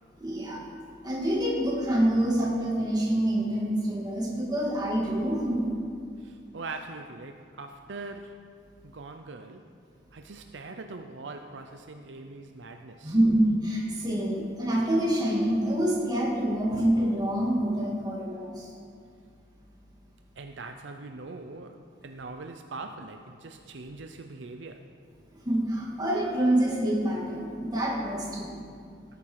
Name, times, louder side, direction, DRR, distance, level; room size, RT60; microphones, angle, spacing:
voice 1, 0.2-0.6 1.0-5.7 13.0-18.7 25.4-28.6, right 1 dB, 20° right, -3 dB, 2.6 m, -26 dB
voice 2, 6.2-8.4 8.8-9.6 10.1-13.2 20.4-24.9, right 3 dB, 75° right, 6 dB, 0.7 m, -42 dB
18.5 x 9.1 x 4.8 m, 2.2 s
head